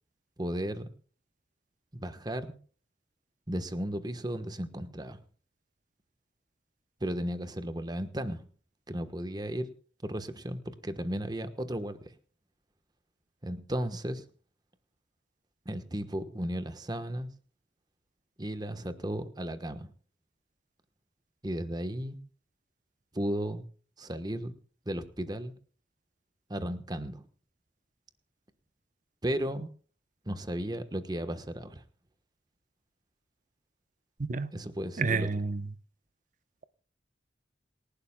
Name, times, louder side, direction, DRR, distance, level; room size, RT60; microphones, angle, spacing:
voice 1, 0.4-0.9 1.9-2.5 3.5-5.2 7.0-8.5 8.9-9.7 10.0-12.0 13.4-14.2 15.6-17.3 18.4-19.9 21.4-22.2 23.1-23.6 24.0-24.6 24.9-25.5 26.5-27.2 29.2-29.7 30.3-31.8 34.5-35.3, equal, 20° right, 1.2 m, -34 dB
voice 2, 35.0-35.6, right 4 dB, 45° right, 0.8 m, -29 dB
28.0 x 12.0 x 2.3 m
head